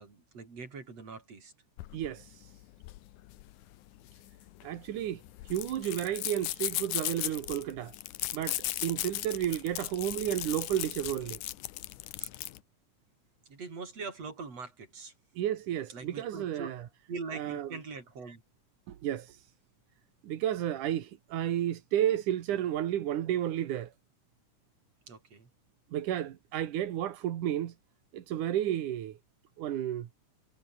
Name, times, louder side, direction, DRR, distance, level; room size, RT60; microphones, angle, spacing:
voice 1, 0.0-1.5 12.2-12.3 13.5-15.1 15.9-16.7 17.1-18.4 25.1-25.5, right 4 dB, 55° right, 6.1 m, -42 dB
sound 1, 1.8-12.6, left 16 dB, 85° left, 2.3 m, -37 dB
voice 2, 1.9-2.5 4.6-7.9 8.3-11.4 15.4-16.8 17.3-17.7 18.9-19.4 20.2-23.9 25.9-27.7 28.1-29.2 29.6-30.1, right 11 dB, 85° right, 3.0 m, -32 dB
omnidirectional pair, 3.5 m